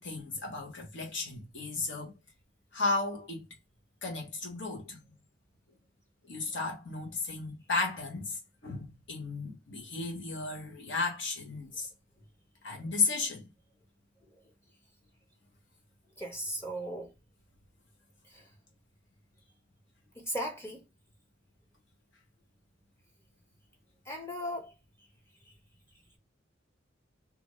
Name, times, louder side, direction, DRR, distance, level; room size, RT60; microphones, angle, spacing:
voice 1, 0.0-2.1 2.7-3.4 4.0-5.0 6.3-11.9 12.6-13.4, left 3 dB, 65° left, 1.0 m, -34 dB
voice 2, 16.2-17.1 18.3-18.5 20.1-20.8 24.1-24.7, equal, 15° left, 0.6 m, -37 dB
2.6 x 2.5 x 3.0 m
head